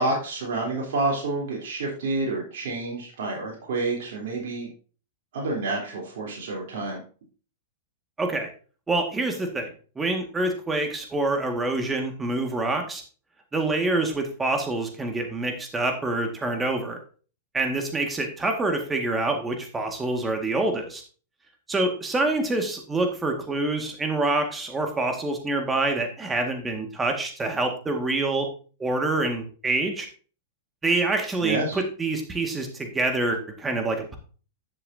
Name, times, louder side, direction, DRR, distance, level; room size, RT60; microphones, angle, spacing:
voice 1, 0.0-4.7 5.3-7.0 31.4-31.8, right 2 dB, 70° right, -3 dB, 3.5 m, -28 dB
voice 2, 8.2-8.5 8.9-9.7 10.0-13.0 13.5-17.0 17.5-21.0 21.7-28.5 28.8-30.1 30.8-34.2, right 2 dB, 15° right, 4 dB, 1.8 m, -26 dB
11.0 x 6.7 x 2.7 m, 0.38 s
hypercardioid pair, 120°, 0 cm